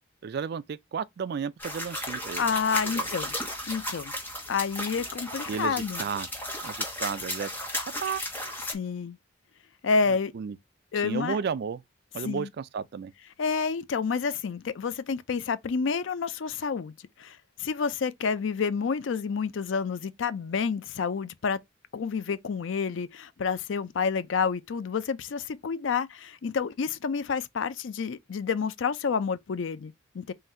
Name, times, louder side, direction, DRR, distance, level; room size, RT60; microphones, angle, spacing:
voice 1, 0.2-2.5 2.8-3.1 5.5-6.3 6.6-7.5 8.0-8.2 10.3-10.6 11.0-11.8 12.1-13.1, right 6 dB, 55° right, 0.3 m, -33 dB
sound 1, 1.6-8.7, left 1 dB, 10° left, 1.1 m, -34 dB
voice 2, 2.4-3.3 3.7-4.1 4.5-6.0 8.7-9.2 9.8-10.3 10.9-11.4 12.2-12.5 13.4-16.9 17.2-21.6 21.9-30.3, left 5 dB, 70° left, 0.4 m, -29 dB
3.8 x 2.6 x 4.3 m
head